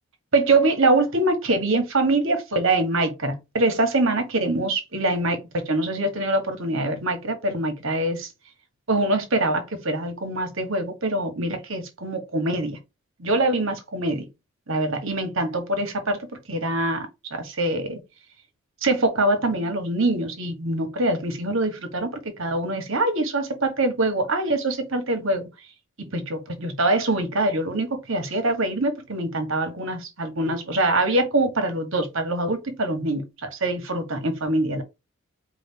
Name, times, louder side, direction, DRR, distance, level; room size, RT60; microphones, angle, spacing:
voice 1, 0.3-8.3 8.9-12.8 13.2-14.2 14.7-16.2 16.5-18.0 18.8-25.5 26.0-34.8, right 2 dB, 65° right, 1.3 m, -24 dB
4.7 x 2.5 x 3.7 m
head